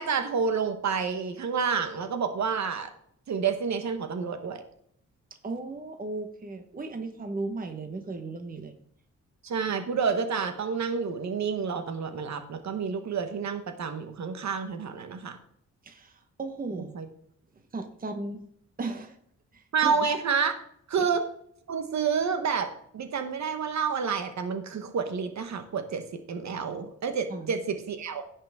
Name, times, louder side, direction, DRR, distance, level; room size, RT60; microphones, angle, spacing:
voice 1, 0.0-2.9 3.3-4.6 9.4-15.4 16.9-17.1 19.7-20.5 20.9-21.2 21.7-28.2, right 6 dB, 65° right, 7 dB, 1.1 m, -29 dB
voice 2, 5.4-8.7 15.8-16.1 16.4-17.0 17.7-18.4 18.8-19.2 19.5-20.0 21.0-21.1 27.3-27.5, right 3 dB, 30° right, 6 dB, 1.1 m, -36 dB
17.0 x 5.8 x 3.6 m, 0.67 s
wide cardioid pair, 160°, 30 cm